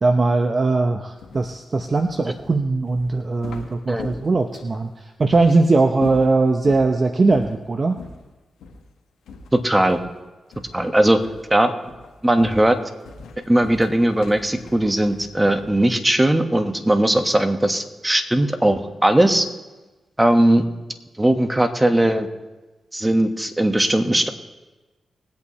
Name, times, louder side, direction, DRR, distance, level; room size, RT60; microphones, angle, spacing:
voice 1, 0.0-4.9 5.2-8.0, right 3 dB, 45° right, 6 dB, 0.8 m, -20 dB
sound 1, 1.2-4.8 5.3-5.5 5.9-6.9 7.3-7.6 7.9-8.2 8.6-8.8 9.3-10.2 10.5-10.9 11.2-11.5 11.9-15.8, left 4 dB, 85° left, 1.4 m, -40 dB
voice 2, 9.5-10.0 10.7-11.2 11.5-11.7 12.2-12.8 13.5-19.5 20.2-20.6 21.2-22.3 22.9-24.3, right 1 dB, 15° right, 7 dB, 1.4 m, -18 dB
20.5 x 8.6 x 3.1 m, 1.1 s
supercardioid pair, 45°, 0 cm